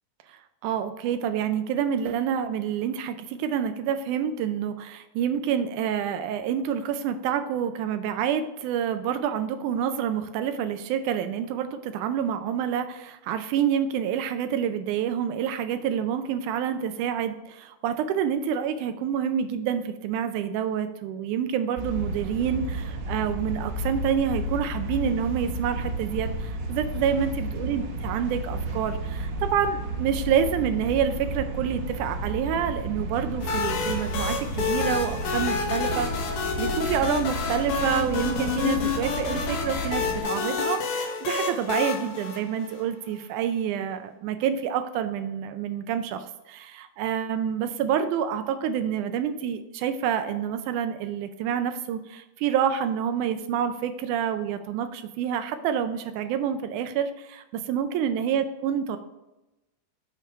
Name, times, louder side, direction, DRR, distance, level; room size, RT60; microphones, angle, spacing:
voice 1, 0.3-59.0, right 8 dB, 80° right, 9 dB, 1.8 m, -28 dB
sound 1, 21.8-40.2, right 1 dB, 60° right, 2.2 m, -32 dB
sound 2, 33.4-43.1, left 5 dB, 90° left, 3.0 m, -29 dB
6.9 x 5.6 x 4.7 m, 0.98 s
omnidirectional pair, 4.0 m